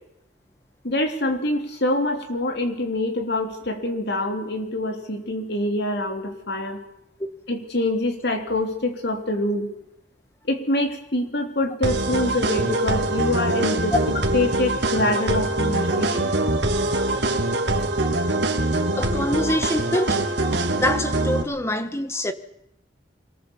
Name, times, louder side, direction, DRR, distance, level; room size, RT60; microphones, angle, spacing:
voice 1, 0.8-6.8 7.5-9.7 10.5-14.0 14.3-16.3, left 1 dB, 60° left, 3.3 m, -25 dB
sound 1, 11.8-21.4, right 2 dB, 65° right, 2.6 m, -23 dB
voice 2, 19.0-20.2 20.7-22.3, left 1 dB, 15° left, 1.3 m, -25 dB
24.5 x 19.5 x 7.2 m
head